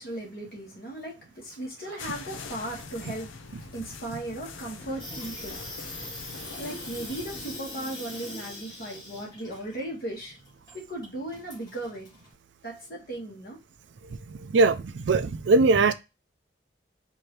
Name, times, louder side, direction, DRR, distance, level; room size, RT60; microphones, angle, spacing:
voice 1, 0.0-3.3 3.7-5.6 6.3-10.4 10.7-12.1 12.6-13.6, right 1 dB, 50° left, 1.8 m, -37 dB
sound 1, 2.0-7.6, left 4 dB, 90° left, 0.6 m, -43 dB
voice 2, 3.5-3.9 14.3-15.9, right 3 dB, 70° right, 0.4 m, -22 dB
Water tap faucet / Sink (filling or washing), 4.7-12.3, left 1 dB, 20° left, 1.7 m, -42 dB
4.3 x 2.8 x 3.2 m
head